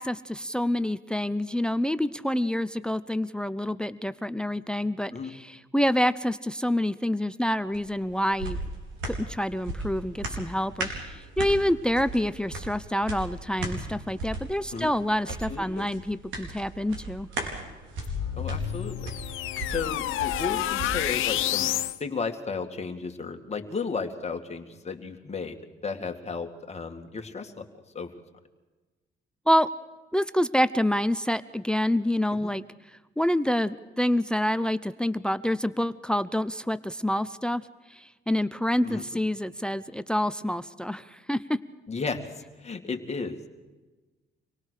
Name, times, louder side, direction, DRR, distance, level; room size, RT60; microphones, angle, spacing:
voice 1, 0.0-8.6 9.0-17.3 29.5-29.7 30.1-32.6 33.2-37.6 37.9-41.6, left 1 dB, 5° left, 15 dB, 0.6 m, -27 dB
sound 1, 7.7-21.4 21.8-21.9, right 2 dB, 75° right, 4.5 m, -37 dB
voice 2, 15.5-15.9 18.3-19.1 19.6-21.7 22.0-25.6 25.8-27.7 27.9-28.1 32.3-32.5 38.8-39.1 41.9-43.5, left 4 dB, 35° left, 4 dB, 2.3 m, -34 dB
sound 2, 18.0-22.0, left 13 dB, 85° left, 0.8 m, -29 dB
26.0 x 18.0 x 6.6 m, 1.2 s
cardioid pair, 90°, 20 cm